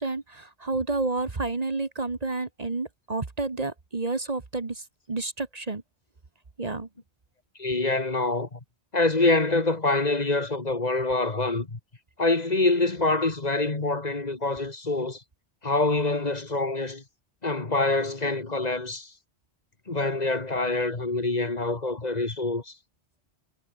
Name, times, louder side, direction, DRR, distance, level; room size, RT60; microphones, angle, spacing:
voice 1, 0.0-5.8 6.6-6.9, right 3 dB, 35° right, 1.5 m, -30 dB
voice 2, 7.6-8.6 8.9-11.8 12.2-15.2 15.6-17.0 17.4-19.1 19.9-22.7, left 2 dB, 35° left, 1.9 m, -25 dB
omnidirectional pair, 1.2 m